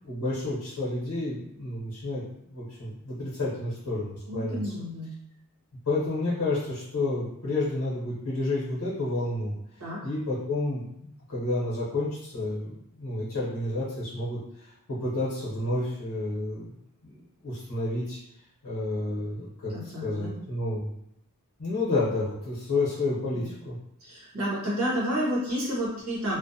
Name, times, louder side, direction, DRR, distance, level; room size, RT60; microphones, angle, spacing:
voice 1, 0.0-4.7 5.9-9.6 10.0-16.7 17.0-18.2 18.6-19.7 20.0-20.9 21.6-23.8, left 2 dB, 85° left, -7 dB, 0.8 m, -30 dB
voice 2, 4.3-5.1 9.8-10.1 19.7-20.3 23.3-23.5 24.0-26.4, equal, 80° right, -6 dB, 1.0 m, -30 dB
2.5 x 2.1 x 2.6 m, 0.76 s
head